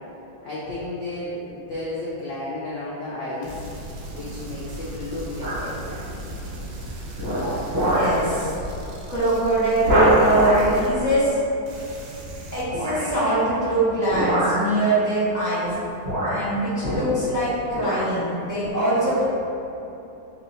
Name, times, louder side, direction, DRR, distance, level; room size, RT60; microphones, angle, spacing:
voice 1, 0.4-3.6 4.1-6.3, left 2 dB, 60° left, -9 dB, 0.9 m, -33 dB
sound 1, 3.4-11.4 11.7-12.6, right 1 dB, 85° right, 1.4 m, -37 dB
sound 2, 5.4-5.8 6.3-6.6 7.2-8.2 8.6-8.8 9.1-9.2 9.8-10.7 12.7-13.1 14.1-14.7 15.6-15.7 16.0-17.4 17.7-18.1 18.6-18.7, equal, 45° right, 1.7 m, -23 dB
voice 2, 7.7-8.5 9.1-11.4 12.5-15.8 16.2-19.3, right 1 dB, 10° right, -13 dB, 1.2 m, -23 dB
4.3 x 2.7 x 4.0 m, 2.9 s
omnidirectional pair, 2.0 m